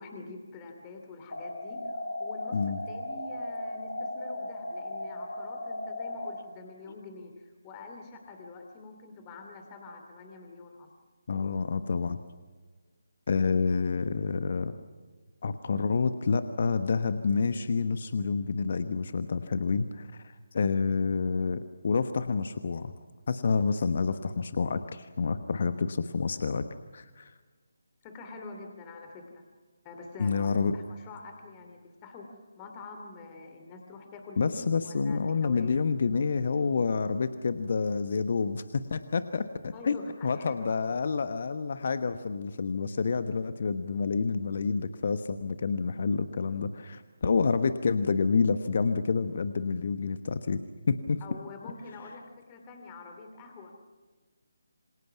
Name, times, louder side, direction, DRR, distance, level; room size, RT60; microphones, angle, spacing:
voice 1, 0.0-10.9 28.0-29.4 29.8-35.7 39.7-40.8 51.2-53.7, left 3 dB, 20° left, 3 dB, 2.8 m, -46 dB
sound 1, 1.3-6.3, left 2 dB, 65° left, 6.9 m, -36 dB
voice 2, 11.3-12.2 13.3-14.7 15.4-22.9 23.3-26.7 26.9-27.3 30.2-30.7 34.4-40.0 40.2-50.6 50.9-51.2, left 5 dB, 45° left, 10 dB, 1.2 m, -28 dB
27.5 x 27.0 x 6.0 m, 1.4 s
figure-of-eight pair, 150°, 0 cm